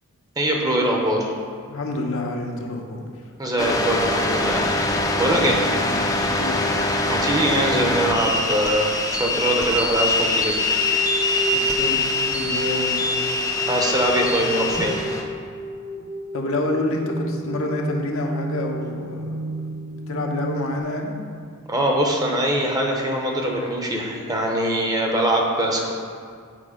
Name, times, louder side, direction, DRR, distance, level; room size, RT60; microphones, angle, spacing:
voice 1, 0.4-1.3 3.4-4.9 5.2-5.6 7.1-10.6 13.7-14.9 21.7-25.9, right 1 dB, 15° right, 0 dB, 0.8 m, -22 dB
voice 2, 1.7-3.0 5.3-5.6 5.8-6.7 11.5-12.0 12.3-13.0 16.3-19.5 19.9-21.2, left 2 dB, 65° left, 1 dB, 0.9 m, -28 dB
sound 1, 3.6-15.2, left 2 dB, 15° left, 0.6 m, -23 dB
sound 2, 10.4-20.8, right 1 dB, 75° right, 1.0 m, -32 dB
7.6 x 4.4 x 5.0 m, 2.1 s
head